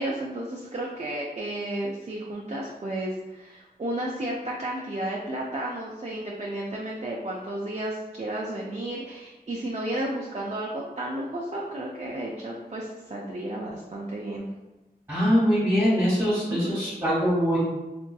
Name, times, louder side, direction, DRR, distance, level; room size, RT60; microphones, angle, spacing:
voice 1, 0.0-14.5 16.5-16.8, right 1 dB, 40° right, -3 dB, 0.4 m, -32 dB
voice 2, 15.1-17.6, equal, 15° right, -9 dB, 1.3 m, -23 dB
3.4 x 2.6 x 2.3 m, 1.1 s
wide cardioid pair, 55°, 17 cm